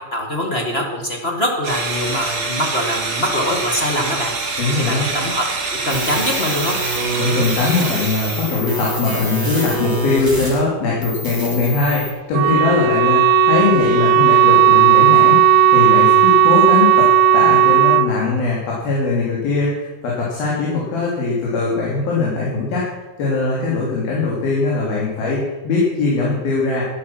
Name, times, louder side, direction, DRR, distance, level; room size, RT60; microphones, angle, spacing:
voice 1, 0.1-4.3 4.9-5.4 5.8-6.8, left 1 dB, 35° left, 1 dB, 0.9 m, -23 dB
sound 1, 1.6-8.6, right 3 dB, 40° right, 3.3 m, -25 dB
voice 2, 4.6-5.1 7.2-26.8, left 3 dB, 75° left, -5 dB, 4.8 m, -21 dB
sound 2, 5.9-10.6 11.0-12.1, right 2 dB, 5° left, 3.4 m, -27 dB
Wind instrument woodwind instrument, 12.3-18.1, right 8 dB, 80° right, 2.4 m, -13 dB
13.5 x 11.0 x 6.0 m, 1.1 s
omnidirectional pair, 4.4 m